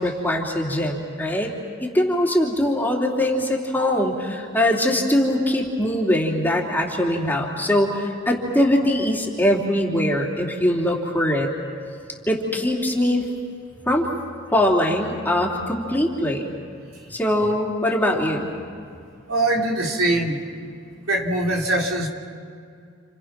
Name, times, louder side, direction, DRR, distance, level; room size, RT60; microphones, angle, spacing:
voice 1, 0.0-1.5 1.8-11.5 12.3-13.3 13.9-14.1 14.5-16.5 17.1-18.5, left 1 dB, 10° left, -2 dB, 3.3 m, -22 dB
voice 2, 19.3-20.4 21.1-22.1, right 1 dB, 90° right, 0 dB, 3.4 m, -22 dB
30.0 x 29.5 x 6.1 m, 2.4 s
head